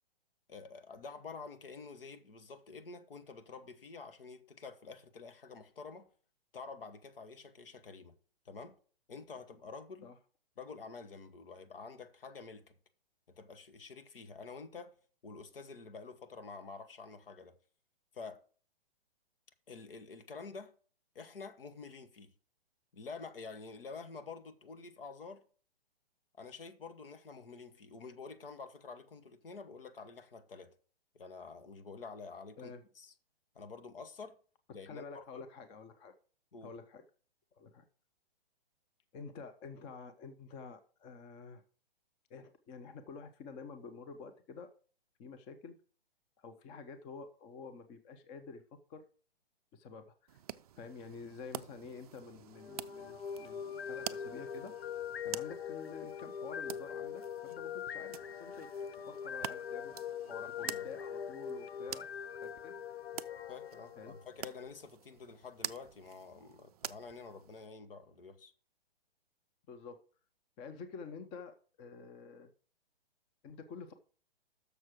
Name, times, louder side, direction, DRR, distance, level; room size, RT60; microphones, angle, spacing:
voice 1, 0.5-6.1 6.5-8.2 8.4-8.8 9.1-10.1 10.6-12.7 13.3-15.0 15.2-17.6 18.1-18.4 19.7-20.7 21.1-22.3 22.9-25.4 26.4-30.7 31.1-33.1 33.5-34.4 34.7-35.4 36.5-36.7 60.3-60.9 63.5-68.5, left 4 dB, 65° left, 1.2 m, -48 dB
voice 2, 34.9-36.1 36.6-37.0 37.6-37.9 39.1-41.6 42.3-44.7 45.2-45.8 46.4-48.6 48.9-49.1 49.7-50.4 50.8-54.7 55.2-58.7 59.1-59.9 60.6-62.1 62.4-62.8 64.0-64.2 69.7-70.0 70.6-72.5 73.4-73.9, left 5 dB, 15° left, 0.5 m, -49 dB
sound 1, 50.3-67.7, right 11 dB, 40° right, 0.4 m, -48 dB
sound 2, 52.5-64.7, left 8 dB, 85° left, 0.5 m, -42 dB
6.7 x 6.2 x 6.0 m
figure-of-eight pair, 125°, 30 cm